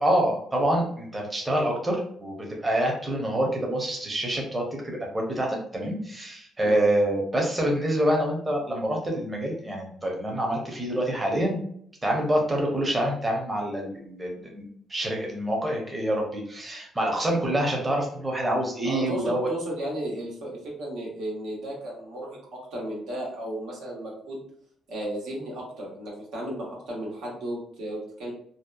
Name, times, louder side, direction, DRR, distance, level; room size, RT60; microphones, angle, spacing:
voice 1, 0.0-2.3 2.6-11.6 12.0-19.5, right 1 dB, 20° right, -1 dB, 0.7 m, -26 dB
voice 2, 18.8-24.4 24.9-28.3, right 1 dB, 85° right, -3 dB, 0.9 m, -34 dB
2.7 x 2.1 x 2.3 m, 0.64 s
cardioid pair, 90°, 0 cm